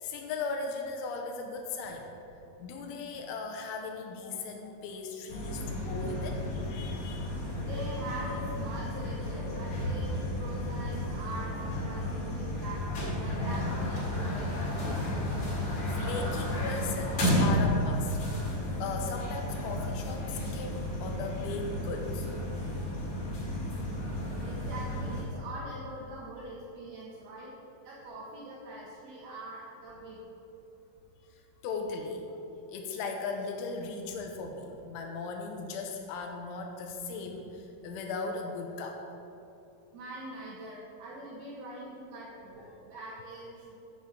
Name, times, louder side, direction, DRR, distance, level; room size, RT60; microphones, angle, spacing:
voice 1, 0.0-2.1 2.6-7.3 15.9-22.3 22.7-22.9 29.3-29.4 31.6-32.3 32.7-39.0, left 4 dB, 90° left, 3 dB, 3.1 m, -37 dB
sound 1, 5.3-25.2, left 1 dB, 45° left, 2.8 m, -32 dB
voice 2, 7.6-12.8 13.2-14.5 24.4-27.5 27.8-30.2 39.9-43.8, right 1 dB, 70° right, -5 dB, 2.7 m, -43 dB
7.0 x 6.7 x 7.6 m, 3.0 s
omnidirectional pair, 5.3 m